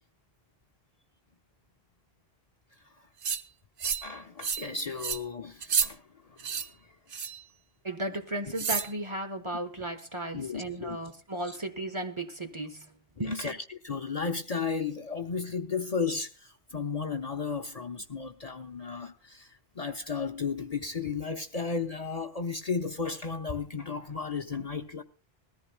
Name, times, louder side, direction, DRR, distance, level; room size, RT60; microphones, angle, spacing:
sound 1, 3.2-3.4 3.8-4.1 4.4-4.7 5.0-5.2 5.6-5.9 6.4-6.7 7.1-7.4 8.6-8.9, right 6 dB, 60° right, 1.0 m, -30 dB
voice 1, 3.8-7.0 10.3-11.0 13.2-25.0, left 5 dB, 40° left, 0.8 m, -34 dB
voice 2, 7.8-12.9 13.2-13.6, right 1 dB, 30° right, 1.1 m, -35 dB
20.5 x 14.5 x 2.2 m
omnidirectional pair, 1.0 m